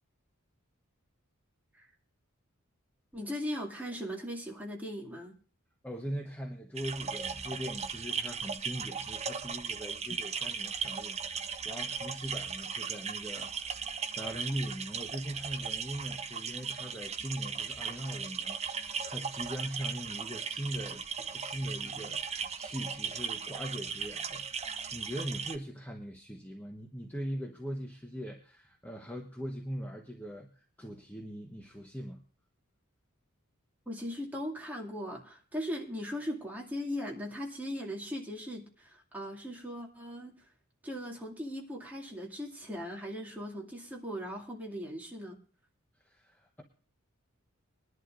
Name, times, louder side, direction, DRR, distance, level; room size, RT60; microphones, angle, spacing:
voice 1, 3.1-5.3 33.9-40.3 40.8-45.4, equal, 10° right, -2 dB, 2.4 m, -39 dB
voice 2, 5.8-32.2 46.0-46.6, equal, 10° left, 1 dB, 1.0 m, -41 dB
sound 1, 6.8-25.6, right 6 dB, 30° right, 0.7 m, -37 dB
22.0 x 11.0 x 2.5 m, 0.41 s
head